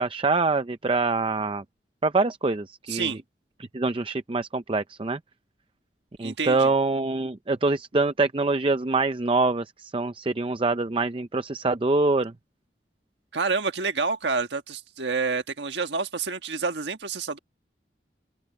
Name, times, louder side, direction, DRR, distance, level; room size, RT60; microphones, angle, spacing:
voice 1, 0.0-1.6 2.0-3.2 3.7-5.2 6.2-12.3, right 3 dB, 30° right, 0.5 m, -25 dB
voice 2, 2.9-3.2 6.2-6.7 13.3-17.4, right 4 dB, 85° right, 1.5 m, -28 dB
head